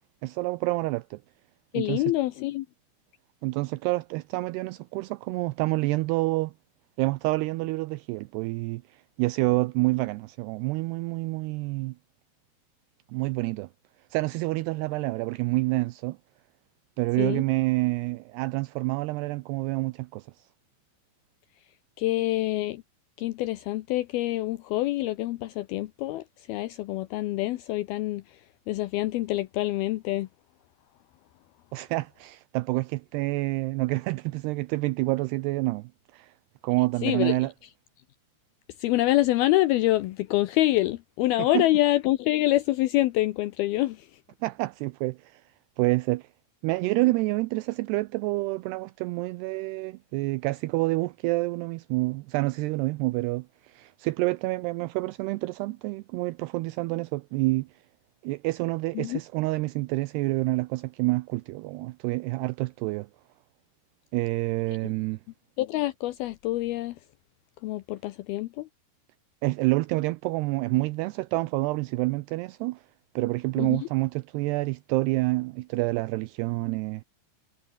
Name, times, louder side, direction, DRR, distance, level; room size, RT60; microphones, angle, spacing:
voice 1, 0.2-1.2 1.7-2.0 3.4-6.5 7.0-12.0 13.1-13.7 14.1-16.2 17.0-20.5 31.7-36.3 36.6-37.5 41.5-41.7 44.4-45.4 45.8-46.3 46.6-57.7 58.2-63.1 64.1-65.2 69.4-72.8 73.2-77.0, right 21 dB, 85° right, 2.4 m, -28 dB
voice 2, 1.7-2.7 17.2-17.4 22.0-22.8 23.2-28.4 28.7-30.3 37.0-37.5 38.8-44.1 59.0-59.2 65.6-67.0 67.6-68.7 73.6-73.9, left 16 dB, 90° left, 2.2 m, -26 dB
omnidirectional pair, 5.3 m